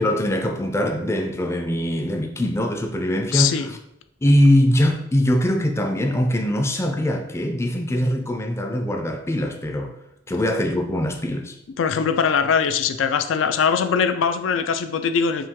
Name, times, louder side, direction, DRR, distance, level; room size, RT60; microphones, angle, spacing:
voice 1, 0.0-3.6 4.2-9.9 10.3-11.5, left 1 dB, 15° left, 0.4 m, -22 dB
voice 2, 3.3-3.7 11.8-15.5, left 6 dB, 85° left, 0.4 m, -21 dB
5.5 x 2.3 x 3.6 m
head